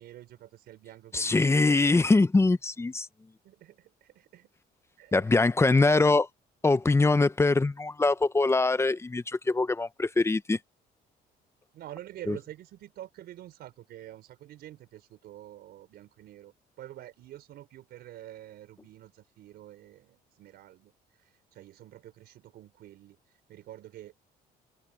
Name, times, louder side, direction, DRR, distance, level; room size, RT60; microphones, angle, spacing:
voice 1, 0.0-2.0 3.4-4.5 5.0-6.1 11.7-24.1, right 13 dB, 70° right, 4.6 m, -47 dB
voice 2, 1.1-3.1 5.1-6.3 6.6-10.6 12.3-12.4, left 3 dB, 15° left, 0.9 m, -23 dB
open air
cardioid pair, 110°, 17 cm